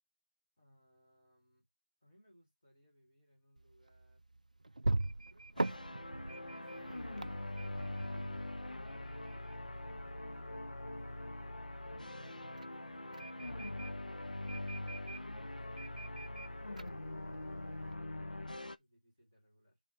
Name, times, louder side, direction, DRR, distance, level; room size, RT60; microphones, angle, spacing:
voice 1, 0.6-1.6 2.0-4.2 5.3-5.9 10.3-11.3 11.8-19.8, equal, 10° left, 1.3 m, -69 dB
sound 1, 3.6-17.9, right 2 dB, 60° right, 0.4 m, -43 dB
sound 2, 5.6-18.8, left 1 dB, 80° left, 0.7 m, -43 dB
5.5 x 3.6 x 5.1 m
figure-of-eight pair, 180°, 4 cm